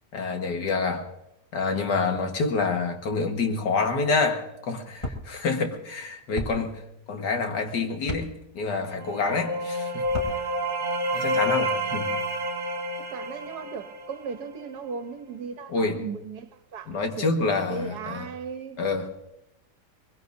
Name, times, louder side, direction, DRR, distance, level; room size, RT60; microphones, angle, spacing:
voice 1, 0.1-1.1 1.5-6.8 7.1-10.1 11.1-12.1 15.7-16.0 16.9-18.3 18.8-19.1, left 4 dB, 75° left, 2.1 m, -27 dB
sound 1, 5.0-5.2 6.4-6.5 8.0-8.3 10.0-10.3, left 1 dB, 20° left, 1.4 m, -32 dB
sound 2, 8.8-14.5, right 1 dB, 50° right, 1.7 m, -29 dB
voice 2, 13.0-17.3 17.7-18.8, right 5 dB, 70° right, 1.4 m, -37 dB
22.5 x 21.5 x 2.6 m
omnidirectional pair, 1.8 m